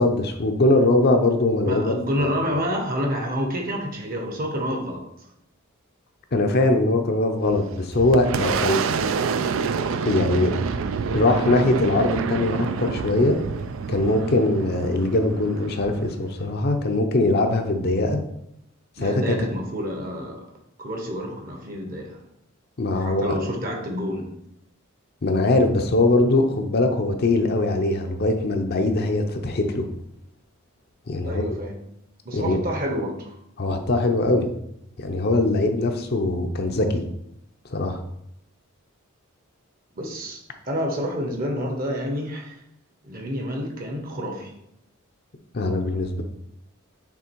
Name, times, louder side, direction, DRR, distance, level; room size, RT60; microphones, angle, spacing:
voice 1, 0.0-1.9 2.2-2.3 6.3-8.8 10.0-10.5 11.1-13.4 13.9-18.2 19.0-19.2 22.8-23.3 25.2-29.8 31.1-31.5 32.3-32.6 33.6-34.5 35.0-37.0 37.7-38.0 45.5-46.2, left 2 dB, 50° left, 4 dB, 0.6 m, -21 dB
voice 2, 1.6-5.1 19.0-20.5 20.8-22.2 23.0-24.3 31.2-31.8 32.2-33.4 39.9-40.4 40.7-42.6 43.0-44.5, equal, 40° right, 2 dB, 1.0 m, -28 dB
Boom, 7.5-16.9, right 5 dB, 65° right, 0.4 m, -28 dB
6.1 x 3.4 x 4.5 m, 0.77 s
head